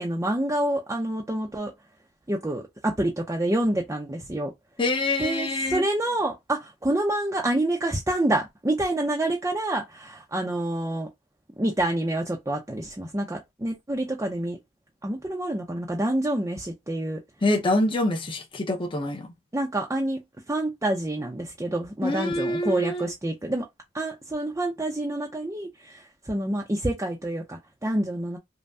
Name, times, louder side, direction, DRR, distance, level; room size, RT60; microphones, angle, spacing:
voice 1, 0.0-1.7 2.3-4.5 5.2-11.1 11.6-14.6 15.0-17.2 19.5-20.2 20.5-23.7 23.9-26.0 26.3-28.4, right 1 dB, 15° right, 0.6 m, -27 dB
voice 2, 4.8-5.8 17.4-19.3 22.0-23.1, left 1 dB, 25° left, 0.8 m, -25 dB
5.3 x 2.2 x 2.7 m
head